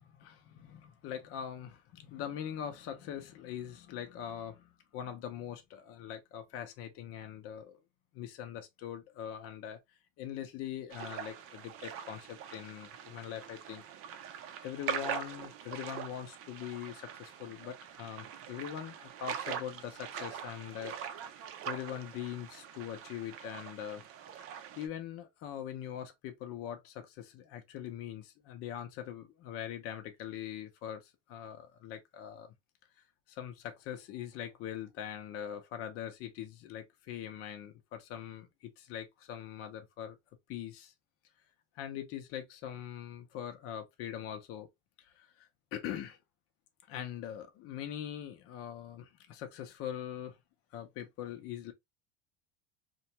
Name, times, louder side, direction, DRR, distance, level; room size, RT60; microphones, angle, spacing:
voice 1, 0.0-7.8 8.1-9.8 10.2-13.8 14.6-21.0 21.6-24.0 24.8-32.5 33.3-40.2 40.5-40.9 41.8-44.7 45.0-46.2 46.9-50.4 50.7-51.7, left 10 dB, 50° left, 0.6 m, -42 dB
sound 1, 10.9-24.9, right 8 dB, 50° right, 0.5 m, -43 dB
2.4 x 2.2 x 2.8 m
supercardioid pair, 125°, 30 cm